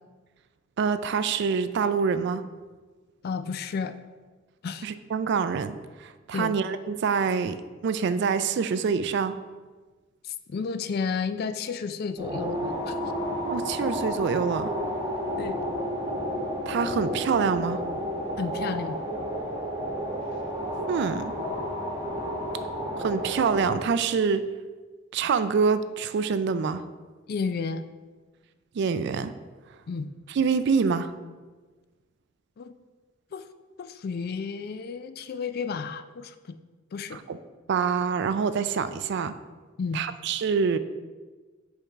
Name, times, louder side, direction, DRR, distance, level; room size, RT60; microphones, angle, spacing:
voice 1, 0.8-2.4 4.8-7.6 7.8-9.4 13.5-14.7 16.7-17.8 20.9-21.3 23.0-24.4 25.1-26.8 28.7-29.3 30.3-31.1 37.3-37.4 37.7-39.3 39.9-40.8, right 5 dB, 60° right, 12 dB, 0.3 m, -26 dB
voice 2, 3.2-3.9 4.6-4.9 6.3-6.6 10.2-13.0 15.4-15.6 18.4-19.0 27.3-27.8 29.9-30.1 32.6-32.7 33.3-33.5 33.8-36.6 36.9-37.2 39.8-40.0, left 5 dB, 50° left, 11 dB, 0.3 m, -32 dB
sound 1, 12.2-23.7, equal, 15° right, 1.1 m, -31 dB
6.9 x 3.7 x 4.5 m, 1.4 s
head